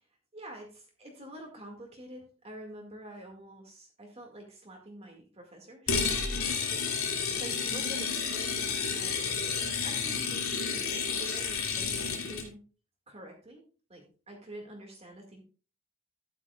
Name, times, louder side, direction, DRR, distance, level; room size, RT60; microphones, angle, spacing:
voice 1, 0.3-9.4 9.8-12.6 13.1-13.6 13.9-15.4, right 1 dB, 30° right, 1 dB, 2.0 m, -47 dB
sound 1, 5.9-12.5, left 5 dB, 85° left, 2.4 m, -31 dB
12.5 x 9.8 x 2.4 m, 0.36 s
head